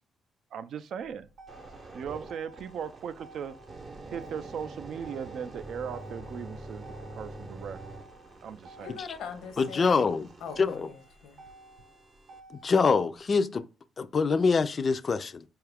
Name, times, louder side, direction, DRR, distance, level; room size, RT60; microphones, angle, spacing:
voice 1, 0.5-1.3 1.9-3.6 4.1-7.8 8.4-8.9, right 7 dB, 70° right, 0.3 m, -38 dB
Motor vehicle (road), 0.9-12.9, right 2 dB, 90° right, 0.9 m, -54 dB
sound 1, 1.5-12.4 13.0-13.2, right 2 dB, 40° right, 0.7 m, -46 dB
voice 2, 8.8-10.1 10.4-11.5, left 6 dB, 85° left, 0.7 m, -42 dB
voice 3, 9.6-10.3 10.6-10.9 12.6-13.6 14.0-15.4, left 5 dB, 40° left, 0.3 m, -25 dB
4.6 x 2.3 x 3.3 m
cardioid pair, 90°, 0 cm